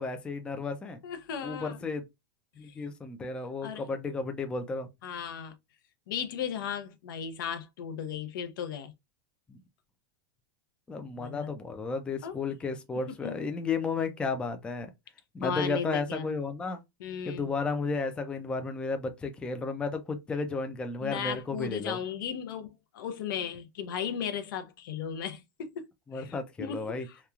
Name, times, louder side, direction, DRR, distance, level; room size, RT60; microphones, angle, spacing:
voice 1, 0.0-1.0 1.4-2.0 2.6-4.9 9.5-9.6 10.9-14.9 15.3-16.8 17.3-22.0 26.1-27.1, left 4 dB, 10° left, 0.3 m, -33 dB
voice 2, 1.0-1.8 2.7-2.8 3.2-3.3 3.6-3.9 5.0-5.5 6.1-8.9 11.2-11.5 12.2-12.4 13.1-13.4 15.4-16.3 17.0-17.5 21.0-22.7 22.9-25.9 26.1-27.2, left 7 dB, 75° left, 0.6 m, -36 dB
3.0 x 2.3 x 2.3 m
supercardioid pair, 140°, 11 cm